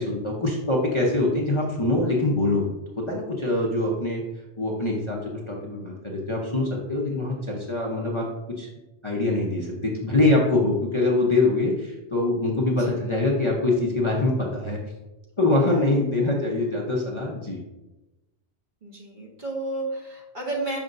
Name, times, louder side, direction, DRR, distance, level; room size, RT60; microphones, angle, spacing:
voice 1, 0.0-4.2 4.6-8.3 8.6-8.7 9.0-14.8 15.4-17.6, left 2 dB, 30° left, -3 dB, 0.8 m, -24 dB
voice 2, 15.5-15.8 18.8-20.8, right 2 dB, 40° right, -2 dB, 1.4 m, -32 dB
6.3 x 5.8 x 2.6 m, 1.0 s
omnidirectional pair, 1.2 m